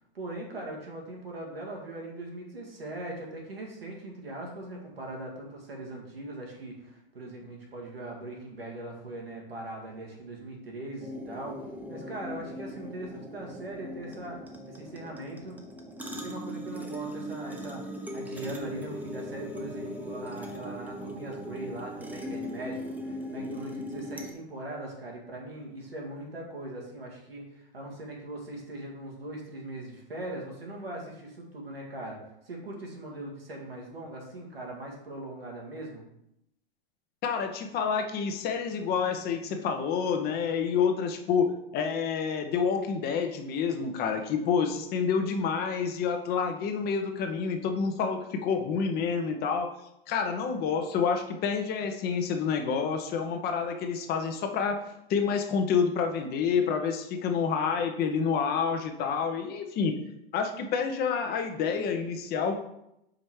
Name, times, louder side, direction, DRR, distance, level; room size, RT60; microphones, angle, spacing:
voice 1, 0.0-11.6 11.9-14.4 14.7-15.6 16.2-17.8 18.1-32.2 32.4-36.0, right 1 dB, 85° right, -1 dB, 1.8 m, -40 dB
sound 1, 11.0-24.3, equal, 5° right, 0.9 m, -39 dB
voice 2, 37.2-49.7 50.1-60.0 60.3-62.6, left 6 dB, 35° left, 5 dB, 0.9 m, -28 dB
5.1 x 4.2 x 4.7 m, 0.81 s
hypercardioid pair, 95°, 29 cm